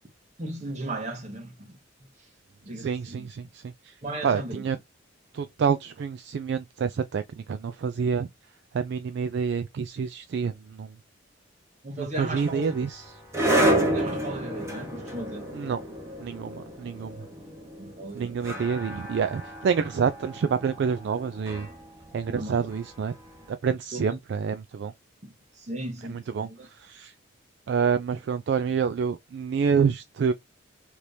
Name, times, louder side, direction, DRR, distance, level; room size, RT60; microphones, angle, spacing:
voice 1, 0.4-2.1 2.6-3.3 4.0-4.6 11.8-12.7 13.7-15.5 17.8-18.6 22.3-22.6 23.9-24.2 25.2-26.7, right 1 dB, 35° right, 1.0 m, -37 dB
voice 2, 2.8-3.9 4.2-4.8 5.3-7.2 7.5-8.3 8.7-10.9 12.0-13.0 15.5-15.8 16.2-17.2 18.1-21.7 22.1-23.1 23.5-24.9 26.0-27.1 27.7-30.3, right 6 dB, 60° right, 0.3 m, -27 dB
sound 1, 12.2-23.3, right 1 dB, 15° right, 1.0 m, -30 dB
2.9 x 2.6 x 3.2 m
head